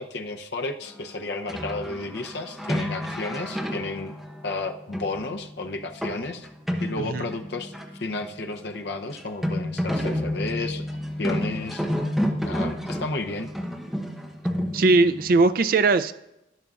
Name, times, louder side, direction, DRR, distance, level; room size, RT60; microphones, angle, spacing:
voice 1, 0.0-4.1 4.4-6.5 6.8-10.9 11.2-11.8 12.4-13.5, left 3 dB, 65° left, 5 dB, 0.7 m, -32 dB
sound 1, 1.5-8.2 8.4-8.5 8.7-8.8 9.2-15.4, equal, ahead, 0.7 m, -30 dB
voice 2, 14.7-16.1, right 3 dB, 50° right, 12 dB, 0.4 m, -20 dB
12.0 x 10.5 x 2.4 m, 0.87 s
head